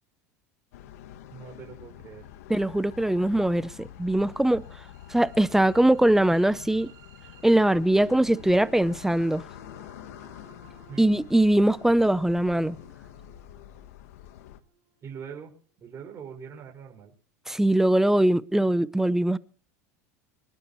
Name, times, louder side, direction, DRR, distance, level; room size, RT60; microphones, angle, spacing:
sound 1, 0.7-14.6, left 11 dB, 80° left, 1.2 m, -46 dB
voice 1, 1.3-2.3 10.9-11.1 15.0-15.5 15.8-17.1, right 7 dB, 35° right, 5.6 m, -42 dB
voice 2, 2.5-4.6 5.1-6.9 7.4-9.4 11.0-12.8 17.5-19.4, right 1 dB, 5° right, 0.6 m, -22 dB
sound 2, 3.9-15.8, right 7 dB, 50° right, 7.6 m, -55 dB
25.0 x 12.0 x 3.1 m
supercardioid pair, 100°, 8 cm